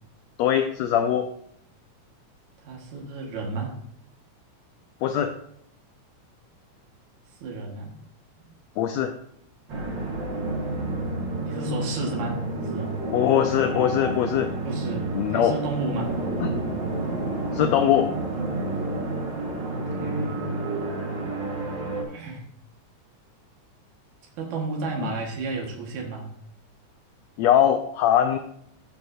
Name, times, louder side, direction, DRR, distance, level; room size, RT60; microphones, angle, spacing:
voice 1, 0.4-1.3 5.0-5.3 8.8-9.1 13.1-14.5 15.1-15.5 17.5-18.1 27.4-28.4, left 10 dB, 80° left, 6 dB, 1.6 m, -21 dB
voice 2, 2.6-3.8 7.3-8.0 8.4-8.5 11.5-13.0 14.6-16.1 19.6-20.5 22.0-22.5 24.4-26.3, right 3 dB, 75° right, -1 dB, 2.9 m, -32 dB
sound 1, 9.7-22.0, right 2 dB, 45° right, 1.8 m, -30 dB
16.0 x 5.9 x 2.6 m, 0.69 s
omnidirectional pair, 3.5 m